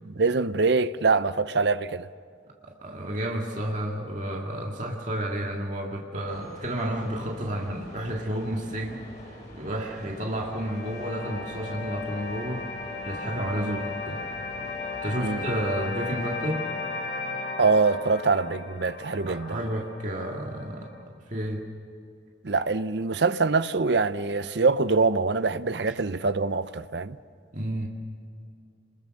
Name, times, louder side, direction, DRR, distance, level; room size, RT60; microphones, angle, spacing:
voice 1, 0.2-2.1 13.5-13.8 15.2-15.5 17.6-19.6 22.4-27.2, right 4 dB, 60° right, 0.7 m, -24 dB
voice 2, 2.6-9.0 9.3-12.7 13.0-14.2 15.0-16.7 19.3-20.9 21.3-21.7 27.5-27.9, right 1 dB, 40° right, 2.0 m, -31 dB
sound 1, 6.3-16.4, equal, 40° left, 6.7 m, -47 dB
sound 2, 10.0-21.0, left 3 dB, 65° left, 2.7 m, -36 dB
28.0 x 21.0 x 6.5 m
head